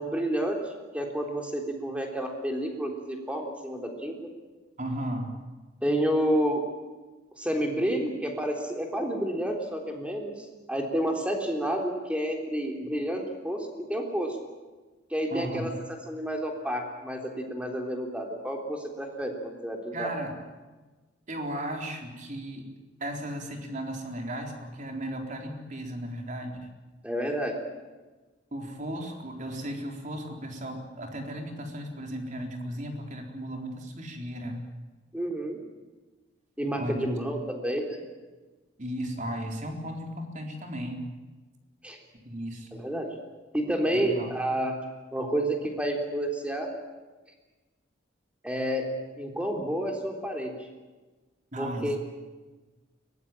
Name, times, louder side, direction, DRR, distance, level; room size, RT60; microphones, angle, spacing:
voice 1, 0.0-4.2 5.8-6.6 7.4-14.4 15.1-15.7 16.1-20.1 27.0-27.6 35.1-35.6 36.6-38.0 41.8-42.0 42.7-43.1 43.5-44.7 45.1-46.7 48.4-50.5 51.6-52.0, right 1 dB, 5° right, 2 dB, 3.6 m, -30 dB
voice 2, 4.8-5.3 15.3-15.7 19.9-20.3 21.3-22.7 23.0-26.7 28.5-34.6 36.8-37.2 38.8-41.1 42.2-42.8 43.9-44.3 51.5-52.0, right 1 dB, 40° right, 3 dB, 4.0 m, -35 dB
22.5 x 19.5 x 9.1 m, 1.2 s
head